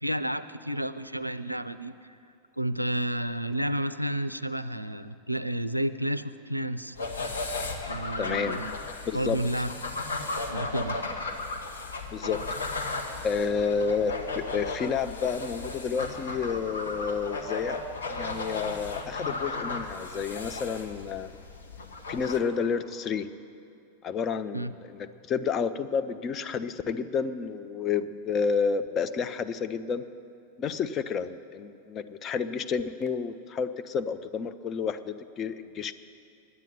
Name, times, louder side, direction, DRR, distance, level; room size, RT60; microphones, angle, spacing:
voice 1, 0.0-1.9 2.6-7.0 7.8-8.7 9.1-9.7 10.5-11.0 24.5-24.7, right 1 dB, 90° right, 13 dB, 0.4 m, -31 dB
sound 1, 6.9-22.4, left 3 dB, 70° left, 1.2 m, -35 dB
voice 2, 8.2-8.6 9.1-9.4 12.1-12.4 13.2-17.8 18.1-21.3 22.1-23.3 24.0-30.0 30.6-35.9, left 6 dB, 30° left, 10 dB, 0.5 m, -30 dB
9.5 x 9.1 x 9.7 m, 2.5 s
figure-of-eight pair, 90°, 0 cm